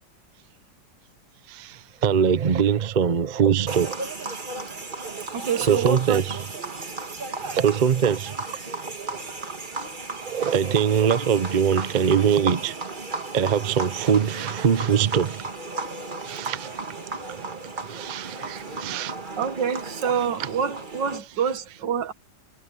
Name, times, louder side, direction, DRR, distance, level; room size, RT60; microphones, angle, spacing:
voice 1, 1.5-4.0 5.6-6.4 7.4-8.4 10.2-12.7 13.3-15.4 16.2-16.8 17.3-17.6 17.9-19.1, right 7 dB, 55° right, 0.5 m, -22 dB
sound 1, 3.7-21.2, right 3 dB, 30° right, 1.7 m, -34 dB
voice 2, 5.3-6.2 19.4-22.1, right 7 dB, 75° right, 2.0 m, -26 dB
omnidirectional pair, 2.0 m